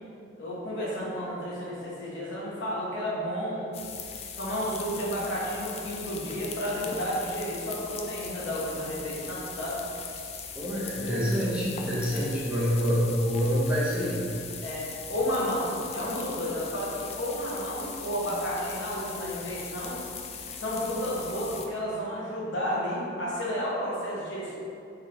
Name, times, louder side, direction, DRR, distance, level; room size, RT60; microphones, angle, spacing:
voice 1, 0.4-3.7 4.4-9.8 10.7-11.2 12.1-12.2 14.6-20.0 20.6-24.5, equal, 75° left, -6 dB, 1.1 m, -32 dB
sound 1, 3.7-21.7, left 6 dB, 35° left, 0.3 m, -40 dB
voice 2, 10.5-14.2, equal, 5° right, -8 dB, 0.7 m, -26 dB
3.9 x 3.6 x 3.4 m, 2.6 s
head